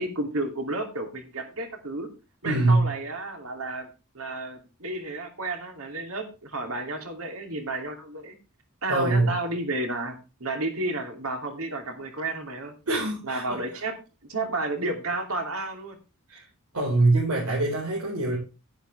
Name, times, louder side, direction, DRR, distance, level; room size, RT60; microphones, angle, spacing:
voice 1, 0.0-2.1 2.4-3.9 4.1-8.4 8.8-12.7 13.2-13.9 14.3-16.0, right 2 dB, 65° right, 4 dB, 2.8 m, -31 dB
voice 2, 2.4-2.9 8.9-9.4 12.9-13.6 16.3-16.4 16.7-18.4, right 2 dB, 85° right, -3 dB, 4.6 m, -23 dB
11.5 x 10.5 x 3.3 m, 0.30 s
head